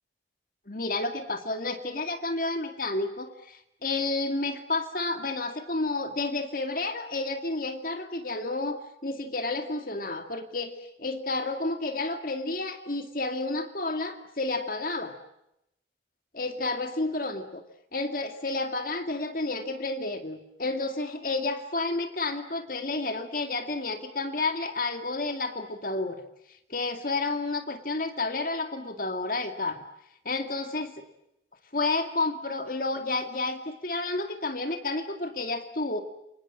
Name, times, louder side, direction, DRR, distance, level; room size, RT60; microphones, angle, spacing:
voice 1, 0.7-10.7 11.0-15.2 16.3-17.6 17.9-26.2 26.7-29.8 30.3-30.9 31.7-36.0, left 2 dB, 50° left, 7 dB, 2.2 m, -30 dB
29.0 x 25.5 x 7.5 m, 0.83 s
head